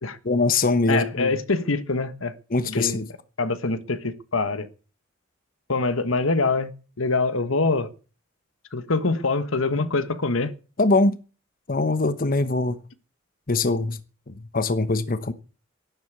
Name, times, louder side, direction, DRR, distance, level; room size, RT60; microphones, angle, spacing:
voice 1, 0.2-1.3 2.5-3.1 10.8-11.2 11.7-12.8 13.5-14.0 14.3-15.3, left 3 dB, 45° left, 1.0 m, -22 dB
voice 2, 0.9-2.3 2.6-3.0 3.4-4.7 5.7-6.7 7.0-7.9 8.7-10.5, left 3 dB, 80° left, 1.4 m, -24 dB
12.0 x 11.0 x 8.2 m
head